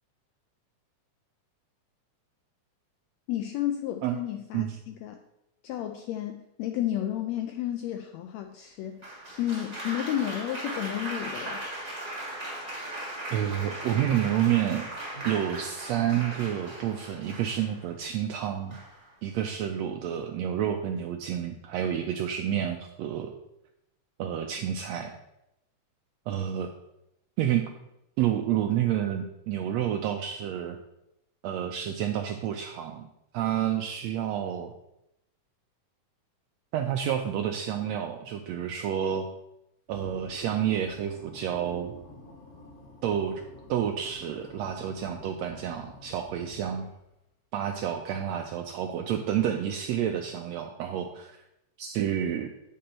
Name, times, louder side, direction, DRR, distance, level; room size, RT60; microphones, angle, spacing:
voice 1, 3.3-5.2 5.6-11.6, left 12 dB, 85° left, 5 dB, 1.5 m, -32 dB
Applause, 9.0-17.9 18.7-19.1, right 1 dB, 20° right, 1.3 m, -38 dB
voice 2, 13.3-14.9 15.2-18.8 19.2-23.3 24.2-25.1 26.3-26.7 27.4-27.7 28.2-30.8 31.4-33.1 33.3-34.7 36.7-39.3 39.9-41.9 43.0-43.4 43.7-46.9 47.5-51.4 51.8-52.5, right 10 dB, 90° right, 4 dB, 1.5 m, -29 dB
sound 1, 39.9-47.1, left 3 dB, 65° left, 3.3 m, -50 dB
8.6 x 5.3 x 4.3 m, 0.84 s
omnidirectional pair, 3.6 m